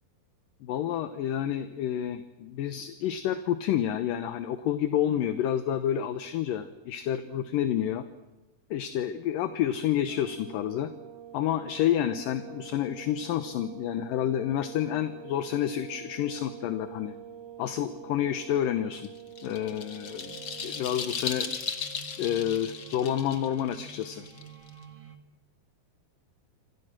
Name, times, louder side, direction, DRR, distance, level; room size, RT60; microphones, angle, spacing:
voice 1, 0.6-8.1 8.7-10.9 11.3-17.1 17.6-19.1 19.4-20.4 20.6-21.5 22.2-24.3, left 10 dB, 70° left, 11 dB, 2.4 m, -29 dB
sound 1, 10.1-21.1, right 9 dB, 80° right, 1.0 m, -46 dB
sound 2, 19.0-24.8, left 6 dB, 45° left, 1.7 m, -36 dB
sound 3, 20.0-25.2, right 4 dB, 45° right, 0.6 m, -49 dB
27.0 x 27.0 x 6.1 m, 1.1 s
omnidirectional pair, 4.4 m